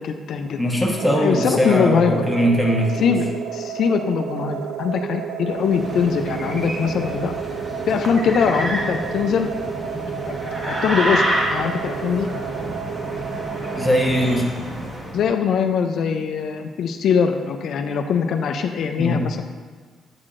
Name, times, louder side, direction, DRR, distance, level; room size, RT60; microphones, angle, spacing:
voice 1, 0.0-0.6 1.2-2.2 3.0-3.2 3.5-7.3 7.9-9.5 10.3-10.4 10.6-12.3 15.1-19.4, left 6 dB, 70° left, 6 dB, 0.4 m, -22 dB
voice 2, 0.6-3.2 13.8-14.4 19.0-19.2, equal, 5° left, -1 dB, 1.2 m, -20 dB
sound 1, 1.0-14.4, right 8 dB, 90° right, 0.3 m, -31 dB
sound 2, 5.5-15.3, equal, 30° right, 1.3 m, -28 dB
8.4 x 6.3 x 2.5 m, 1.5 s
cardioid pair, 90°, 0 cm